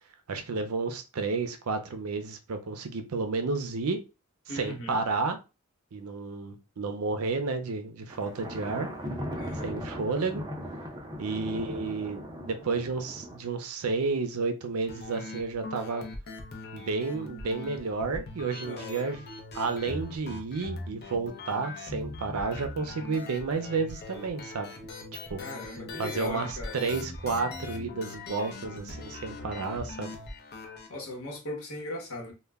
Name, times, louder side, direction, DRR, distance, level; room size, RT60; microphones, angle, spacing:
voice 1, 0.3-4.0 4.5-5.4 5.9-8.9 9.6-10.4 11.2-16.1 16.7-19.2 19.5-24.7 25.1-25.4 26.0-30.1, right 4 dB, 80° right, 0.5 m, -31 dB
voice 2, 4.5-5.1 9.4-9.8 18.6-19.1 25.4-26.7 30.9-32.3, left 1 dB, 70° left, 1.0 m, -38 dB
Thunder, 8.1-13.4, equal, 20° right, 0.5 m, -38 dB
sound 1, 14.9-30.9, left 3 dB, 50° left, 0.6 m, -41 dB
2.2 x 2.1 x 3.4 m
head